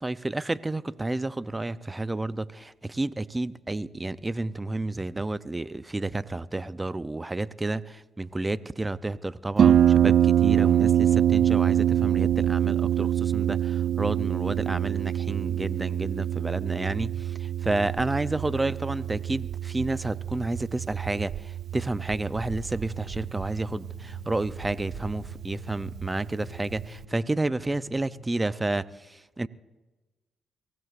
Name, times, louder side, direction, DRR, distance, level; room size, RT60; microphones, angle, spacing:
voice 1, 0.0-29.5, right 2 dB, 20° right, 0.6 m, -30 dB
Harp, 9.6-27.0, right 10 dB, 70° right, 0.4 m, -25 dB
sound 1, 22.5-28.2, left 4 dB, 55° left, 1.8 m, -47 dB
23.5 x 17.5 x 2.6 m
supercardioid pair, 65°, 0 cm